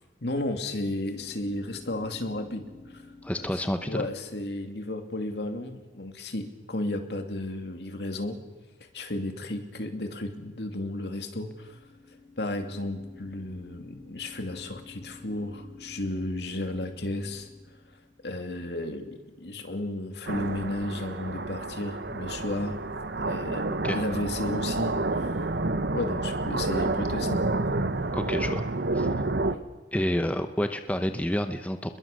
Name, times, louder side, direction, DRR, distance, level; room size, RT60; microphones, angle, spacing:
voice 1, 0.2-2.6 2.9-3.0 3.4-8.4 8.9-11.8 12.4-17.5 18.2-22.8 23.2-25.3 25.9-27.4, left 1 dB, 70° left, 5 dB, 2.7 m, -33 dB
sound 1, 1.2-5.2 11.3-18.3, left 3 dB, 40° left, 5.9 m, -51 dB
voice 2, 3.2-4.1 23.8-24.0 28.1-28.6 28.9-29.1 29.9-32.0, equal, 10° left, 7 dB, 0.8 m, -29 dB
sound 2, 20.3-29.6, right 2 dB, 75° right, 1.1 m, -29 dB
28.5 x 21.5 x 6.7 m, 1.3 s
head